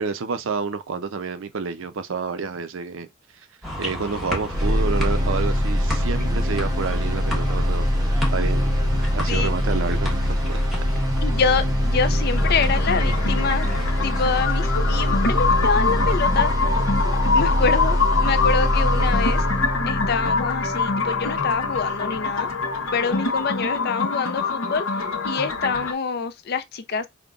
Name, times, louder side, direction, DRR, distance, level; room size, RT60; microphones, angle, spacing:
voice 1, 0.0-3.1 3.8-8.7 9.1-10.6, right 5 dB, 70° right, 0.5 m, -29 dB
sound 1, 3.6-14.5, left 1 dB, ahead, 1.1 m, -33 dB
sound 2, 4.5-22.5, equal, 20° right, 0.6 m, -23 dB
voice 2, 11.2-13.7 14.0-16.5 17.3-19.5 19.8-22.5 22.9-27.1, left 5 dB, 50° left, 0.5 m, -26 dB
sound 3, 12.3-25.9, left 4 dB, 75° left, 0.8 m, -25 dB
5.2 x 2.1 x 2.4 m
head